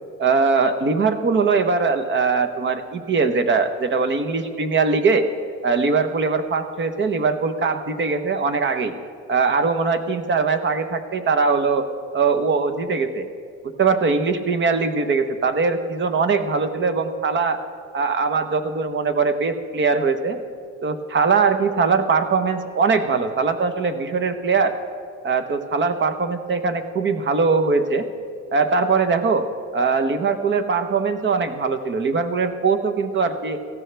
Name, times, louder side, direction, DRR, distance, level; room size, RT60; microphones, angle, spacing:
voice 1, 0.2-5.3 5.6-8.9 9.3-11.8 12.1-13.3 13.6-17.6 17.9-20.4 20.8-24.7 25.2-28.1 28.5-29.5 29.7-33.6, right 4 dB, 40° right, 9 dB, 1.0 m, -21 dB
18.0 x 14.5 x 3.4 m, 2.3 s
cardioid pair, 120°, 30 cm